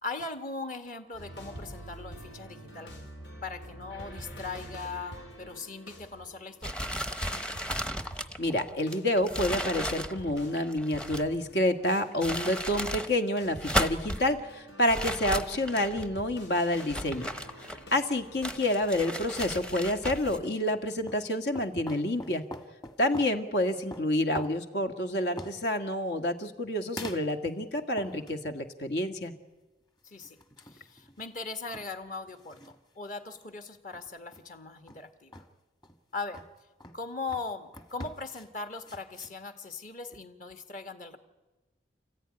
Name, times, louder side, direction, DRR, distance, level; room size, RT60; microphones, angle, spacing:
voice 1, 0.0-2.9 3.4-6.7 7.1-7.2 30.0-35.4 36.1-36.4 36.9-41.2, left 3 dB, 50° left, 7 dB, 1.9 m, -39 dB
sound 1, 1.1-8.5 8.9-9.1 10.2-20.7, equal, 90° left, 4.0 m, -48 dB
sound 2, 6.6-11.4 12.0-13.1 13.5-14.2 14.9-16.1 16.7-18.0 18.4-20.4, equal, 5° left, 0.8 m, -34 dB
voice 2, 8.4-17.3 17.9-22.4 23.0-29.3, left 1 dB, 70° left, 6 dB, 2.0 m, -28 dB
sound 3, 20.8-21.3 21.5-23.4 23.9-24.6 25.1-25.6 27.0-27.6 28.0-28.6 30.1-31.3 31.7-31.9 32.2-32.8 33.3-33.4 33.9-34.4 34.9-35.0 35.3-35.5 35.8-36.0 36.3-36.5 36.8-37.0 37.3-37.5 37.7-38.5 38.8-39.3, left 1 dB, 25° left, 1.5 m, -44 dB
30.0 x 14.5 x 10.0 m, 1.2 s
head